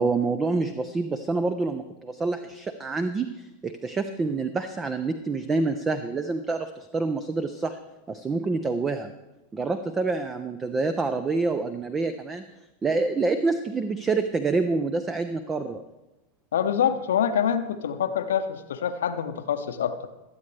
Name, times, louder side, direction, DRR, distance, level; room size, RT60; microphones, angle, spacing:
voice 1, 0.0-3.3 3.6-7.8 8.1-9.1 9.5-12.4 12.8-15.8, right 3 dB, 15° right, 11 dB, 0.6 m, -27 dB
voice 2, 16.5-20.0, left 8 dB, 60° left, 9 dB, 0.8 m, -25 dB
22.0 x 8.5 x 3.3 m, 1.0 s
figure-of-eight pair, 90°, 0 cm